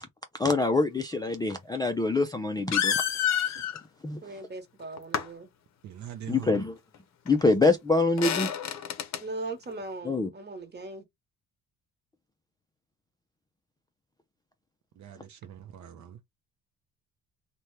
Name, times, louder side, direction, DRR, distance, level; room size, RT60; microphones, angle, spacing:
voice 1, 0.4-3.0 4.0-4.2 6.3-6.8 7.3-8.5 10.0-10.3, left 3 dB, 10° left, 0.3 m, -25 dB
sound 1, 1.7-1.8 2.7-3.8 5.0-5.3 7.3-7.4 7.6-7.7 8.2-9.2, left 9 dB, 50° left, 0.6 m, -28 dB
voice 2, 4.2-5.5 9.2-11.0, right 2 dB, 30° right, 1.1 m, -39 dB
voice 3, 5.8-6.6 15.0-16.2, right 10 dB, 55° right, 0.5 m, -42 dB
2.7 x 2.2 x 3.2 m
cardioid pair, 85°, 35 cm